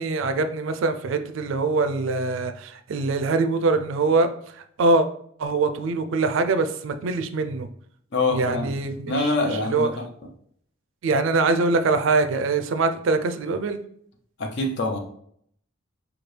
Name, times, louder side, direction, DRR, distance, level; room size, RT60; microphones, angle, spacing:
voice 1, 0.0-5.1 5.4-7.7 8.3-9.3 9.6-9.9 11.0-13.8, right 3 dB, 65° right, 9 dB, 0.4 m, -23 dB
voice 2, 8.1-8.7 9.1-10.1 14.4-15.0, left 2 dB, 55° left, 3 dB, 0.6 m, -25 dB
4.3 x 2.3 x 3.2 m, 0.65 s
head